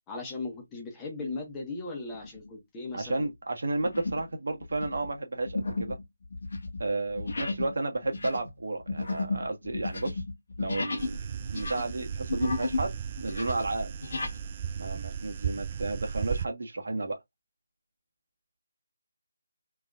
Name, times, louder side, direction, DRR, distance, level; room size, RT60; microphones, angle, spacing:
voice 1, 0.0-3.2, left 3 dB, 15° left, 1.3 m, -38 dB
sound 1, 2.1-2.5 3.0-3.2 3.8-4.3 4.6-11.2 11.5-12.9 13.2-14.4, left 3 dB, 55° left, 1.3 m, -34 dB
voice 2, 2.9-6.0 6.8-10.2 10.6-13.9 14.8-17.2, right 2 dB, 55° right, 1.3 m, -32 dB
sound 2, 11.0-16.5, right 7 dB, 30° right, 0.5 m, -35 dB
3.7 x 3.5 x 2.4 m
figure-of-eight pair, 155°, 0 cm